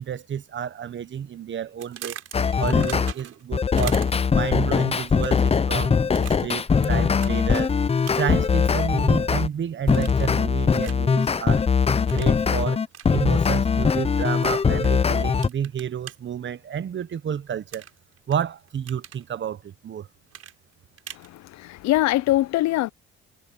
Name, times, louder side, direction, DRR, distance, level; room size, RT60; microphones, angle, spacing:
voice 1, 0.0-2.2 2.6-4.0 4.3-7.7 8.1-11.7 12.1-12.8 13.1-17.8 18.3-20.1, right 8 dB, 40° right, 1.0 m, -30 dB
sound 1, 1.8-3.5 3.8-4.4 5.1-5.5 6.1-6.9 7.2-7.4 8.0-8.4 8.8-9.5 9.9-10.4 10.8-11.1 12.1-12.4 12.9-13.1 14.4-14.9 15.4-16.1 17.7-18.4 18.7-19.2 20.3-21.3, right 10 dB, 55° right, 4.4 m, -40 dB
sound 2, 2.3-3.1 3.5-9.5 9.9-15.5, left 5 dB, 20° left, 0.6 m, -21 dB
voice 2, 21.1-22.9, left 16 dB, 65° left, 0.7 m, -23 dB
cardioid pair, 105°, 29 cm